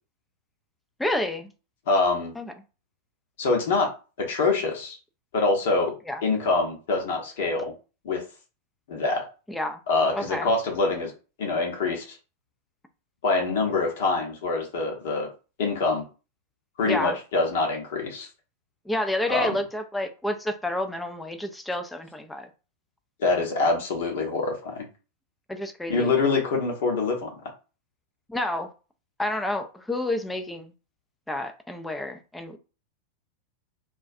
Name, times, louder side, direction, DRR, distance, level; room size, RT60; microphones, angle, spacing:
voice 1, 1.0-1.5 2.4-2.5 6.1-6.2 9.5-9.8 10.1-10.5 16.8-17.2 18.9-22.5 25.5-26.1 28.3-28.7 29.2-30.7 31.3-32.6, left 1 dB, 5° left, 0.4 m, -29 dB
voice 2, 1.9-2.3 3.4-3.9 4.2-5.0 5.3-5.9 6.2-7.7 8.0-8.2 8.9-9.3 9.9-11.1 11.4-12.2 13.2-15.3 15.6-16.1 16.8-18.3 19.3-19.5 23.2-24.8 25.9-27.3, left 3 dB, 55° left, 0.8 m, -25 dB
2.3 x 2.2 x 2.6 m
figure-of-eight pair, 90°, 0 cm